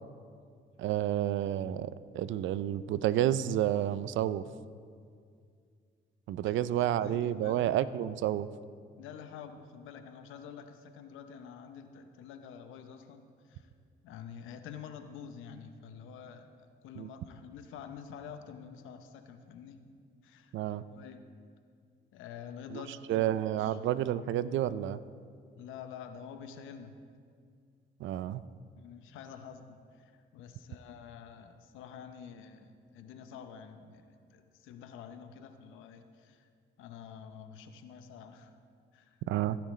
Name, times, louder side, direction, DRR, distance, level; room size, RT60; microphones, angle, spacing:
voice 1, 0.8-4.5 6.3-8.5 17.0-17.1 20.5-20.8 23.1-25.0 28.0-28.4 39.3-39.6, right 12 dB, 75° right, 16 dB, 0.4 m, -30 dB
voice 2, 6.4-7.7 9.0-13.7 14.0-19.8 20.2-20.6 20.8-21.3 22.1-23.8 25.6-27.0 28.8-36.5 36.8-38.5 38.9-39.2, left 7 dB, 90° left, 8 dB, 0.8 m, -48 dB
16.0 x 10.0 x 3.2 m, 2.2 s
cardioid pair, 90°, 20 cm